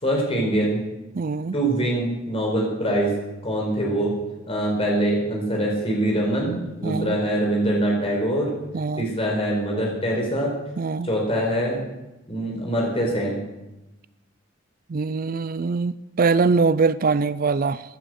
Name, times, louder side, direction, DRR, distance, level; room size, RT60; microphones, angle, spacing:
voice 1, 0.0-0.8 1.5-3.1 3.4-4.1 4.5-8.5 9.0-10.5 11.0-11.8 12.3-13.4, right 1 dB, 30° left, 4.7 m, -23 dB
voice 2, 1.1-1.5 6.8-7.2 8.7-9.1 10.8-11.1 14.9-17.8, right 4 dB, 45° right, 0.4 m, -22 dB
16.5 x 10.0 x 6.4 m
head